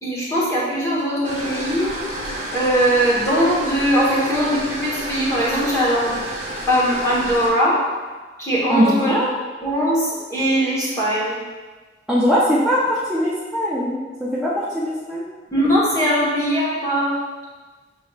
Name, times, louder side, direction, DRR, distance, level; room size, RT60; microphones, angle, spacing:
voice 1, 0.0-2.0 2.5-6.2 6.7-7.8 8.4-9.2 9.6-11.4 15.5-17.1, equal, 15° left, -6 dB, 1.1 m, -20 dB
sound 1, 1.2-7.5, right 1 dB, 30° right, 1.2 m, -30 dB
voice 2, 8.7-9.3 12.1-15.3, equal, 5° right, -9 dB, 0.6 m, -20 dB
6.8 x 3.3 x 2.4 m, 1.3 s
head